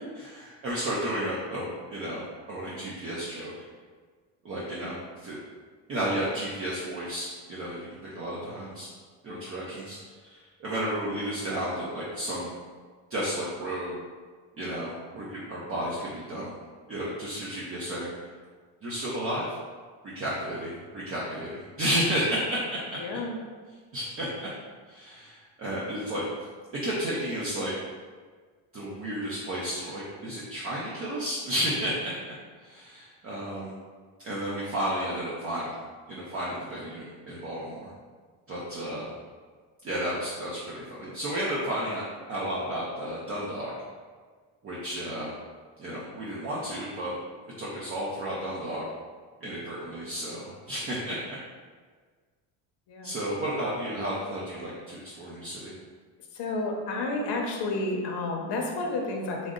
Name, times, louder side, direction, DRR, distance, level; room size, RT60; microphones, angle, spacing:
voice 1, 0.2-3.5 4.4-5.4 5.9-8.9 9.2-12.5 13.1-14.0 14.6-16.5 16.9-18.1 18.8-19.6 20.0-23.0 23.9-24.5 24.9-26.3 26.7-27.7 28.7-32.1 32.6-33.8 34.2-35.7 36.1-37.9 38.5-39.1 39.8-42.0 42.3-43.7 44.6-45.3 45.8-47.1 47.6-48.8 49.4-51.4 53.0-55.7, equal, 35° right, -6 dB, 0.5 m, -32 dB
voice 2, 23.0-23.3 52.9-53.2 56.3-59.5, left 2 dB, 70° left, 0 dB, 0.6 m, -31 dB
3.7 x 2.0 x 3.6 m, 1.5 s
cardioid pair, 175°, 42 cm